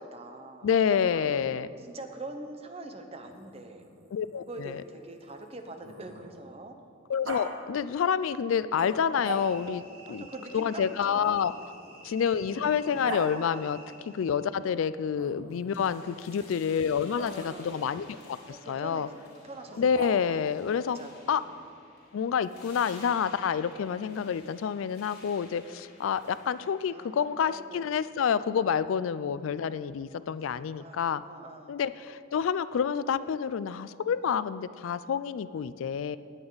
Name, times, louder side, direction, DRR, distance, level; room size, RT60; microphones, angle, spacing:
voice 1, 0.0-1.4 1.8-3.8 4.5-6.7 10.1-11.3 11.6-12.1 16.3-16.6 17.0-18.0 18.4-20.4 20.9-21.7 23.9-24.3 26.9-28.1 29.3-29.6 30.5-31.8, right 2 dB, 30° right, 5 dB, 0.8 m, -44 dB
voice 2, 0.6-1.7 4.1-4.8 7.1-9.8 10.1-10.3 10.5-11.5 12.0-13.8 14.1-19.1 19.8-21.0 21.3-21.4 22.1-31.2 31.7-36.2, left 7 dB, 80° left, 15 dB, 0.3 m, -28 dB
Growling, 3.2-6.6 7.2-7.4 8.7-9.8 11.2-13.3 15.1-15.8 17.1-17.3 19.7-20.5, right 1 dB, 70° right, 1.7 m, -42 dB
sound 1, 9.3-14.4, right 2 dB, 45° right, 2.7 m, -52 dB
sound 2, 15.7-27.6, left 2 dB, 50° left, 3.3 m, -54 dB
18.0 x 7.9 x 4.0 m, 2.4 s
head